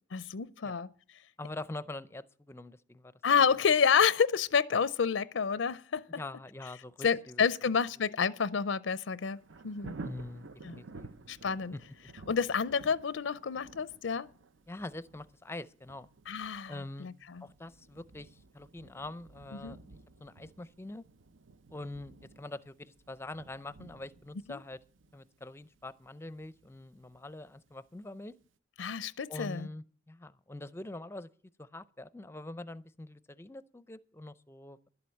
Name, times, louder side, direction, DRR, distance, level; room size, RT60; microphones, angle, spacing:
voice 1, 0.1-0.9 3.2-6.1 7.0-9.4 9.6-10.0 10.6-10.8 11.3-11.7 12.3-14.3 16.3-16.7 17.0-17.4 19.6-19.8 24.5-24.6 28.8-29.7, left 6 dB, 80° left, 0.5 m, -29 dB
voice 2, 1.4-3.1 6.2-7.7 10.0-11.1 11.7-11.8 14.7-16.1 16.7-17.1 17.4-21.0 21.7-24.8 25.1-28.3 29.3-31.3 31.6-34.9, left 2 dB, 15° left, 0.5 m, -44 dB
Thunder, 9.2-28.0 28.4-28.5, right 3 dB, 85° right, 0.7 m, -52 dB
11.5 x 7.7 x 8.4 m
head